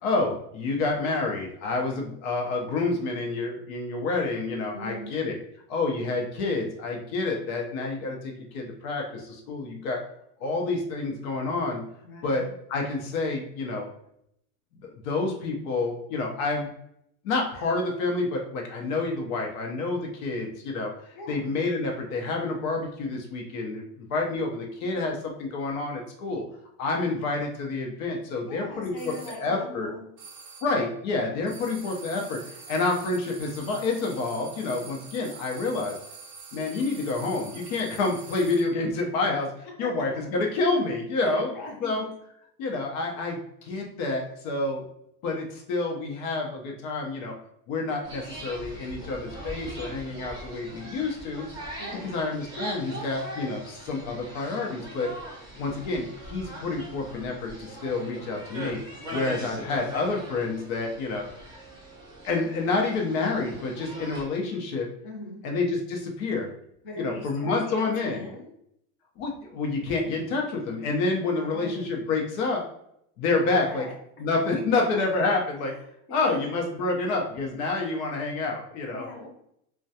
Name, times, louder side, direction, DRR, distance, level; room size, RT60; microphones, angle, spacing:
voice 1, 0.0-5.3 5.7-10.0 10.4-11.8 12.2-12.4 12.7-13.9 14.8-16.7 17.2-26.4 26.8-29.1 29.4-29.9 30.6-36.0 36.5-39.5 39.8-41.5 41.8-42.0 42.6-44.8 45.2-47.3 47.7-51.5 52.0-55.1 55.6-58.8 59.1-61.3 62.2-64.9 65.4-66.5 67.0-68.3 69.2-72.6 73.2-73.9 74.2-75.7 76.1-79.1, left 3 dB, 65° left, 1 dB, 0.6 m, -28 dB
voice 2, 4.7-5.3 12.0-12.5 21.1-21.5 28.5-30.1 39.8-39.9 41.2-41.9 51.8-52.2 59.2-59.6 65.0-65.4 66.8-68.5 71.4-71.9 73.5-74.0 74.7-74.8 75.6-76.4 78.9-79.3, left 1 dB, 30° left, -3 dB, 0.6 m, -41 dB
sound 1, 28.9-29.5 30.2-30.8 31.5-38.8, right 4 dB, 35° right, 0.4 m, -45 dB
sound 2, 48.0-64.2, right 1 dB, 10° right, 0.7 m, -41 dB
2.2 x 2.2 x 2.6 m, 0.74 s
supercardioid pair, 150°, 44 cm